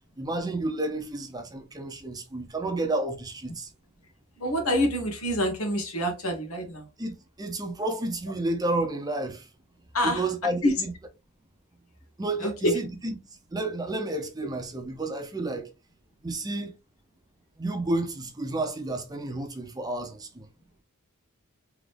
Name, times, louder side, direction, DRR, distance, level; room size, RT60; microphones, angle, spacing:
voice 1, 0.2-3.7 7.0-9.5 10.0-10.9 12.2-13.1 13.5-15.7 16.2-16.7 17.6-20.5, right 2 dB, 20° right, 0.6 m, -31 dB
voice 2, 4.4-6.9 9.9-10.2 10.6-10.7 12.4-12.7, equal, 80° left, 1.3 m, -26 dB
3.6 x 2.9 x 3.3 m
head